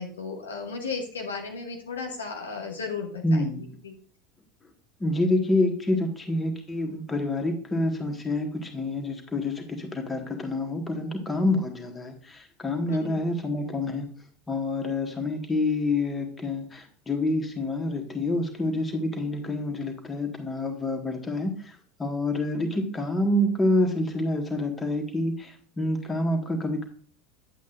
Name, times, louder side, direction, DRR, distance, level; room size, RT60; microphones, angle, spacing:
voice 1, 0.0-3.9 12.9-13.2, left 4 dB, 75° left, 1 dB, 1.8 m, -35 dB
voice 2, 3.2-3.7 5.0-14.1 14.5-21.7 22.0-26.8, left 1 dB, 15° left, 4 dB, 1.6 m, -27 dB
10.5 x 8.2 x 2.5 m, 0.43 s
figure-of-eight pair, 75°, 0 cm